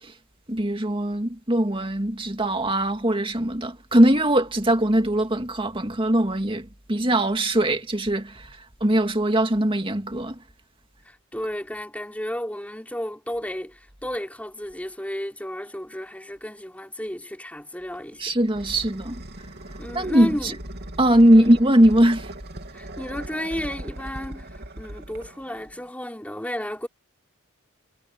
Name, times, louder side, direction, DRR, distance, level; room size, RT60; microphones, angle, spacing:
voice 1, 0.5-10.4 18.2-19.2 19.9-20.5 21.0-22.3, right 1 dB, 25° right, 2.4 m, -21 dB
voice 2, 11.0-18.3 19.8-20.6 21.3-21.5 22.7-26.9, equal, 5° left, 3.6 m, -33 dB
sound 1, 17.9-25.9, right 1 dB, 50° right, 3.2 m, -39 dB
head